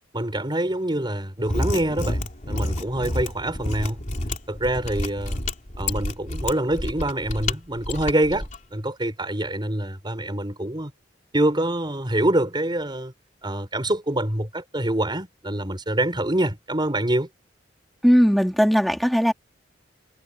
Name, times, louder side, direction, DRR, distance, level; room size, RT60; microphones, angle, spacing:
voice 1, 0.1-4.0 4.5-5.4 5.8-10.9 11.3-13.1 13.4-17.3, right 1 dB, 25° right, 5.2 m, -25 dB
Mechanisms, 1.4-8.6, left 1 dB, 40° left, 3.5 m, -29 dB
voice 2, 18.0-19.3, equal, ahead, 3.5 m, -18 dB
head